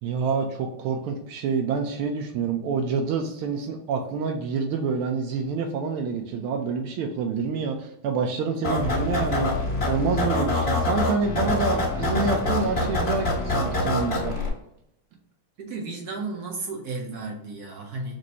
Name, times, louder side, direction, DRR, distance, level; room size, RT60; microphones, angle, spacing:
voice 1, 0.0-9.5 9.8-14.3, right 5 dB, 80° right, 3 dB, 1.5 m, -27 dB
sound 1, 8.6-14.5, left 2 dB, 30° left, 1.6 m, -25 dB
voice 2, 15.6-18.2, right 3 dB, 65° right, 0 dB, 1.0 m, -33 dB
6.1 x 2.6 x 2.8 m, 0.79 s
omnidirectional pair, 2.4 m